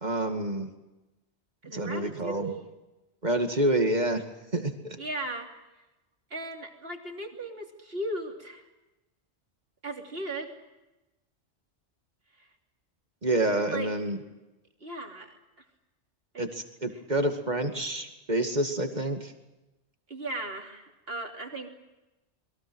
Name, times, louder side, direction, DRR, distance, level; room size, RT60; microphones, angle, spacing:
voice 1, 0.0-0.7 1.7-2.5 3.2-4.2 4.5-5.0 13.2-14.2 16.4-19.3, right 1 dB, 40° right, 5 dB, 2.4 m, -28 dB
voice 2, 1.6-2.6 5.0-5.5 6.3-8.6 9.8-10.6 13.7-13.9 14.8-15.3 16.3-16.5 20.1-21.7, right 2 dB, 60° right, 2 dB, 3.3 m, -36 dB
29.5 x 22.0 x 6.4 m, 1.0 s
omnidirectional pair, 1.1 m